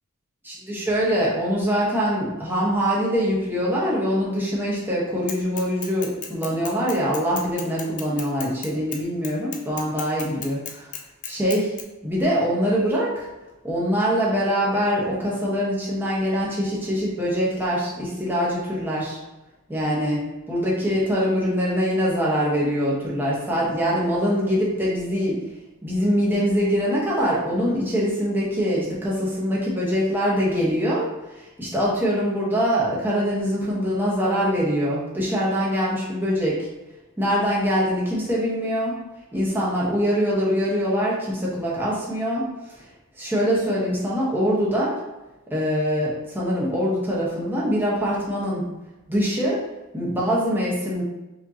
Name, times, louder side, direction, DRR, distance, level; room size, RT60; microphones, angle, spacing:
voice 1, 0.4-10.9 11.3-11.7 12.0-13.3 13.6-19.2 19.7-20.2 20.5-25.4 25.8-31.1 31.6-36.7 37.2-38.9 39.3-42.5 42.7-42.8 43.2-45.0 45.5-48.6 49.1-49.6 49.9-51.0, equal, 10° right, -6 dB, 1.1 m, -23 dB
Bicycle / Mechanisms, 5.3-11.8, left 7 dB, 35° left, 0.5 m, -35 dB
5.1 x 3.0 x 2.8 m, 1.0 s
head